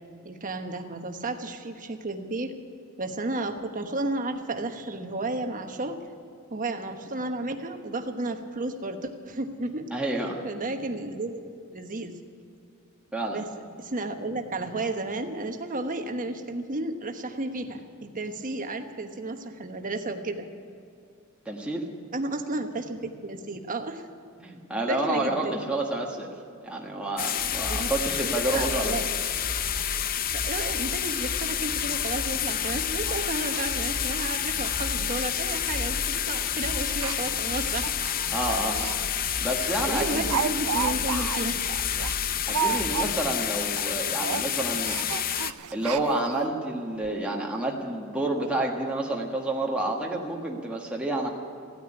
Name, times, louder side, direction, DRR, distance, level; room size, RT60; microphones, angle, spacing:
voice 1, 0.2-2.5 3.0-6.0 6.5-9.9 10.4-11.4 11.7-12.1 13.3-13.5 13.8-20.5 22.1-24.0 24.9-25.7 27.7-27.9 28.5-29.2 30.3-37.9 39.9-41.7 42.6-42.8, right 2 dB, 40° right, 6 dB, 1.2 m, -32 dB
voice 2, 9.9-10.4 13.1-13.4 21.4-21.9 24.4-26.3 26.6-28.9 38.3-38.9 39.4-40.3 42.5-45.0 45.7-51.3, right 2 dB, 5° right, -2 dB, 1.4 m, -29 dB
sound 1, 27.2-45.5, left 10 dB, 40° left, 0.5 m, -29 dB
sound 2, 27.4-43.2, equal, 10° left, 3.5 m, -38 dB
Speech, 32.2-32.3 32.6-32.7 33.1-33.2 33.5-33.6 34.1-34.2 34.5-34.8 35.0-35.1 35.9-36.1 36.9-39.0 39.3-39.5 39.8-43.4 43.6-43.9 44.2-46.4 47.0-47.1 47.4-47.5, right 7 dB, 85° right, 0.5 m, -33 dB
15.5 x 9.4 x 9.7 m, 2.5 s
head